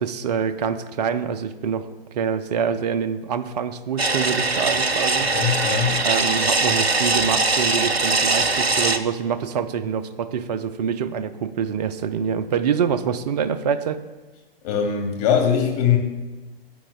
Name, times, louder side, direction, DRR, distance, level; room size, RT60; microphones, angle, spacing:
voice 1, 0.0-5.3 6.0-14.0, right 7 dB, 45° right, 12 dB, 0.6 m, -25 dB
sound 1, 4.0-9.0, right 3 dB, 85° right, 0.8 m, -21 dB
voice 2, 5.2-6.0 14.6-16.0, left 8 dB, 40° left, 3 dB, 2.2 m, -21 dB
17.0 x 8.6 x 2.4 m, 1.2 s
figure-of-eight pair, 115°, 30 cm